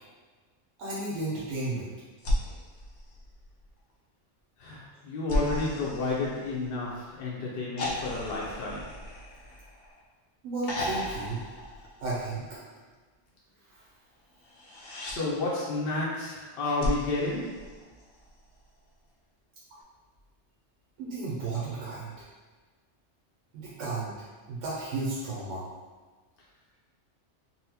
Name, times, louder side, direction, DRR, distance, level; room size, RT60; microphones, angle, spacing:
voice 1, 0.8-1.9 10.4-11.5 12.0-12.6 21.0-22.1 23.5-24.2 24.5-25.6, right 3 dB, 85° right, -6 dB, 1.0 m, -33 dB
sound 1, 2.2-3.8 5.3-7.0 7.8-10.0 10.6-12.5 14.4-15.2 16.8-18.3 19.8-19.9, left 1 dB, 85° left, 1.0 m, -35 dB
voice 2, 4.6-8.9 15.0-17.7, left 3 dB, 65° left, -5 dB, 0.8 m, -31 dB
4.0 x 2.1 x 2.7 m, 1.4 s
omnidirectional pair, 1.2 m